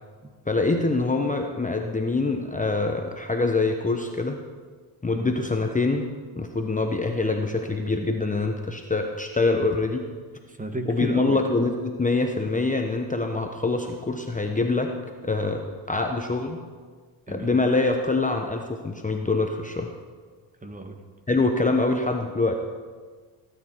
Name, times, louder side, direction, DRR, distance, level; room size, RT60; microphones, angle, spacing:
voice 1, 0.5-4.4 5.0-6.1 6.4-10.0 10.9-14.9 15.2-16.6 17.3-19.9 21.3-22.5, left 3 dB, 15° left, 4 dB, 1.1 m, -25 dB
voice 2, 10.5-11.4 17.3-17.6 20.6-21.0, right 2 dB, 15° right, 5 dB, 1.7 m, -33 dB
17.5 x 9.1 x 4.6 m, 1.5 s
supercardioid pair, 75°, 47 cm